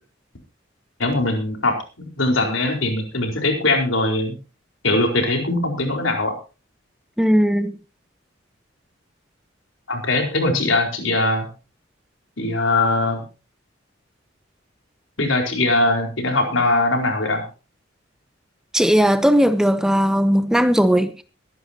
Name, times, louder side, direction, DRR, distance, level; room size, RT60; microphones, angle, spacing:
voice 1, 1.0-4.4 4.8-6.3 9.9-11.5 12.4-13.2 15.2-17.4, left 2 dB, 80° left, 4.5 m, -21 dB
voice 2, 7.2-7.7 18.7-21.2, equal, 5° right, 0.8 m, -17 dB
23.0 x 11.0 x 2.8 m
head